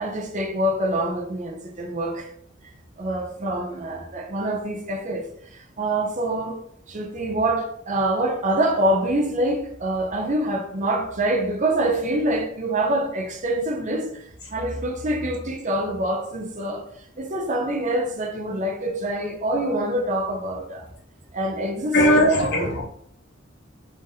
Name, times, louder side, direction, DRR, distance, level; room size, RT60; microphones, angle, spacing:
voice 1, 0.0-2.3 3.0-6.6 6.9-16.9 17.2-20.9 21.3-22.7, right 1 dB, 40° right, 0.6 m, -25 dB
voice 2, 21.9-22.8, equal, 60° left, 0.8 m, -18 dB
3.6 x 2.6 x 3.7 m
head